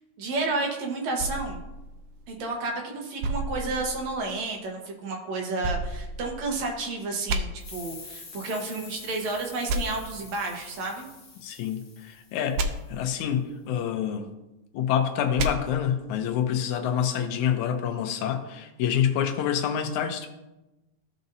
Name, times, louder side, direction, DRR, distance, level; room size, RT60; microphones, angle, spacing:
voice 1, 0.2-1.6 2.3-11.1, right 3 dB, 70° right, 1 dB, 2.4 m, -31 dB
sound 1, 1.2-2.6 3.2-4.4 5.6-6.8 7.3-7.4 9.7-9.8 12.6-12.7 15.4-15.5, right 2 dB, 90° right, 2.1 m, -31 dB
sound 2, 7.6-12.9, left 4 dB, 50° left, 1.4 m, -46 dB
voice 2, 11.4-14.3 14.7-20.3, left 9 dB, 80° left, 6 dB, 2.2 m, -27 dB
15.0 x 5.3 x 2.7 m, 0.98 s
omnidirectional pair, 3.4 m